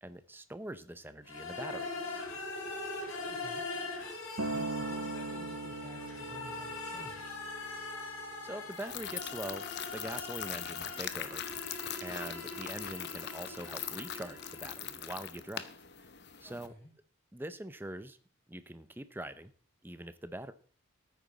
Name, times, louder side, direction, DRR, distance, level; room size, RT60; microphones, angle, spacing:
voice 1, 0.0-1.9 8.4-9.7 9.9-11.4 12.0-15.7 16.4-16.7 17.3-18.2 18.5-19.5 19.8-20.5, right 1 dB, 10° right, 11 dB, 0.7 m, -43 dB
sound 1, 1.2-15.1, left 3 dB, 85° left, 5.1 m, -42 dB
voice 2, 3.3-3.6 4.4-7.4 16.4-16.9, left 1 dB, 5° left, -4 dB, 7.2 m, -51 dB
Acoustic guitar, 4.4-8.7 9.5-9.6, right 3 dB, 85° right, 1.2 m, -40 dB
sound 2, 8.7-16.7, left 9 dB, 55° left, 0.9 m, -42 dB
13.5 x 9.2 x 4.1 m, 0.44 s
head